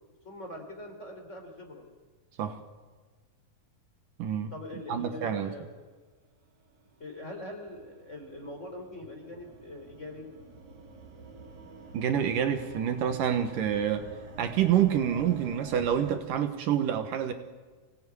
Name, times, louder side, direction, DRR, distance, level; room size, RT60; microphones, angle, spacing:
voice 1, 0.2-1.9 4.5-5.7 7.0-10.3, left 1 dB, 20° left, 3 dB, 3.9 m, -42 dB
voice 2, 4.2-4.5 4.9-5.5 11.9-14.1 14.4-17.3, right 9 dB, 70° right, 8 dB, 2.8 m, -27 dB
sound 1, 6.5-16.2, right 3 dB, 55° right, 3.5 m, -49 dB
25.0 x 17.5 x 9.7 m, 1.4 s
omnidirectional pair, 4.1 m